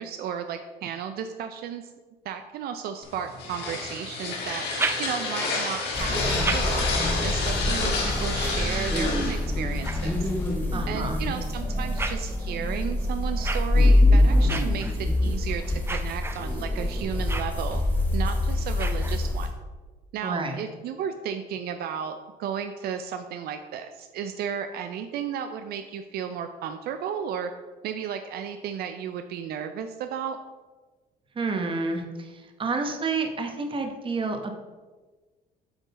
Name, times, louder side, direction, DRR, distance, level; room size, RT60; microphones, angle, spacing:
voice 1, 0.0-1.9 2.2-4.6 5.0-6.9 7.2-10.3 10.9-17.8 18.1-19.5 20.1-27.5 27.8-30.4, right 8 dB, 70° right, 7 dB, 0.4 m, -34 dB
sound 1, 3.0-10.5, left 3 dB, 80° left, 1.7 m, -30 dB
sound 2, 4.5-5.5 6.1-10.7 11.3-19.6, right 3 dB, 15° right, 0.5 m, -38 dB
sound 3, 5.9-19.5, left 1 dB, 10° left, 2.0 m, -25 dB
voice 2, 10.7-11.2 20.2-20.6 31.3-34.5, right 3 dB, 30° right, 5 dB, 1.0 m, -29 dB
7.9 x 3.8 x 4.1 m, 1.3 s
cardioid pair, 110°, 17 cm